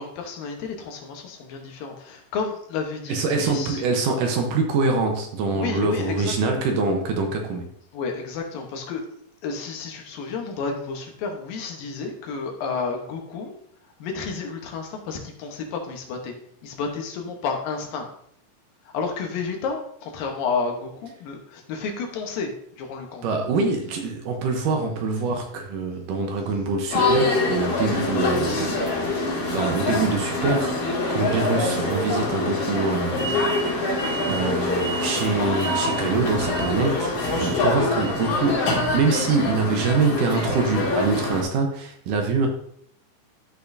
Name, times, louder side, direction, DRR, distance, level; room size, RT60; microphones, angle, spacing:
voice 1, 0.0-3.8 5.5-6.3 7.9-9.0 9.4-13.5 14.0-16.3 16.6-18.1 18.9-22.5 22.8-23.3, left 5 dB, 75° left, 3 dB, 2.8 m, -31 dB
voice 2, 3.1-7.7 23.2-28.8 29.5-33.9 34.2-37.1 37.4-38.6 38.9-42.5, right 4 dB, 70° right, 3 dB, 2.3 m, -25 dB
sound 1, 26.9-41.4, left 2 dB, 60° left, 3.5 m, -24 dB
13.0 x 5.6 x 2.6 m, 0.66 s
omnidirectional pair, 4.2 m